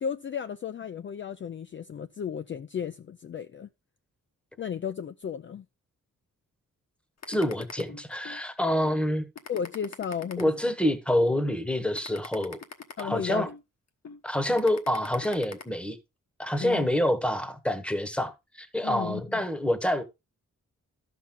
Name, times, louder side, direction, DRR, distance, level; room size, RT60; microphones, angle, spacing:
voice 1, 0.0-3.7 4.6-5.6 9.5-10.5 13.0-13.5 14.5-14.6 16.6-16.9 18.8-19.5, left 7 dB, 40° left, 0.4 m, -34 dB
sound 1, 7.2-8.4 8.8-9.0 9.4-11.0 11.4-11.6 11.9-13.6 14.0-14.2 14.6-15.6, left 5 dB, 55° left, 1.2 m, -42 dB
voice 2, 7.3-9.3 10.4-12.6 13.0-13.5 14.2-16.0 16.4-20.0, left 1 dB, 5° left, 1.0 m, -27 dB
12.5 x 5.9 x 3.7 m
wide cardioid pair, 150°, 31 cm